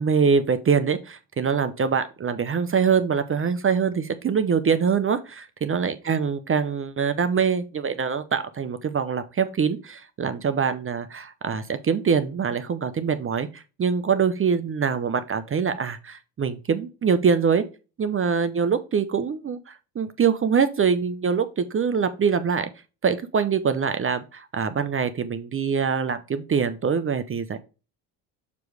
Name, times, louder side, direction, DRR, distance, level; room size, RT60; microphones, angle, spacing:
voice 1, 0.0-17.6 18.0-22.7 23.0-27.6, right 6 dB, 30° right, 11 dB, 0.6 m, -24 dB
6.8 x 3.1 x 4.8 m, 0.31 s
supercardioid pair, 75°, 45 cm